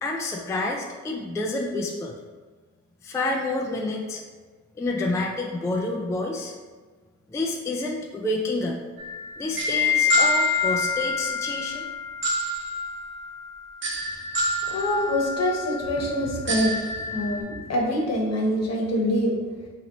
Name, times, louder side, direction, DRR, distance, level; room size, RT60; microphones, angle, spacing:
voice 1, 0.0-2.1 3.0-4.2 4.8-6.5 7.3-8.8 9.4-11.9, left 2 dB, 10° left, 0 dB, 0.3 m, -28 dB
sound 1, 9.0-17.4, left 3 dB, 40° right, 0.8 m, -27 dB
voice 2, 14.7-19.4, equal, 55° left, -1 dB, 1.0 m, -25 dB
3.0 x 2.9 x 3.9 m, 1.4 s
cardioid pair, 90°, 30 cm